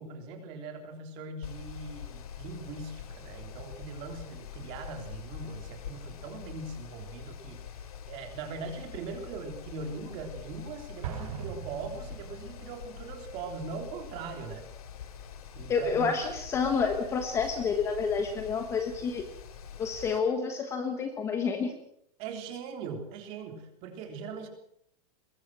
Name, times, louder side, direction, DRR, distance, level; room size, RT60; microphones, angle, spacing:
voice 1, 0.0-7.6 8.1-14.7 15.5-16.1 22.2-24.5, right 4 dB, 25° right, 5 dB, 3.5 m, -40 dB
Mechanical fan, 1.4-20.2, left 8 dB, 65° left, 3.4 m, -45 dB
Explosion, 11.0-12.8, right 7 dB, 60° right, 6.6 m, -40 dB
voice 2, 15.7-19.2 19.8-21.7, left 5 dB, 15° left, 6 dB, 1.3 m, -29 dB
22.5 x 21.5 x 6.1 m, 0.73 s
supercardioid pair, 180°, 20 cm